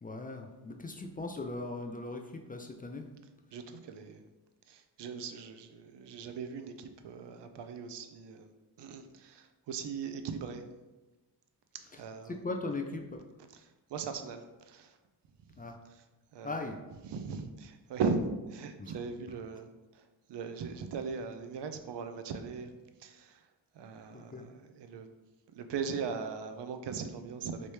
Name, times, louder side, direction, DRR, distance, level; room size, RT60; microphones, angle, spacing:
voice 1, 0.0-3.1 12.3-13.3 15.6-15.8 16.4-16.8 18.8-18.9 24.1-24.4, left 2 dB, 20° left, 4 dB, 0.3 m, -39 dB
voice 2, 3.5-4.3 4.7-8.5 8.8-10.6 12.0-12.4 13.5-15.0 15.9-16.0 16.3-16.6 16.9-19.7 19.9-22.7 23.0-23.4 23.7-25.1 25.5-27.7, right 5 dB, 65° right, 8 dB, 0.5 m, -39 dB
3.2 x 2.6 x 3.1 m, 1.1 s
cardioid pair, 55°, 45 cm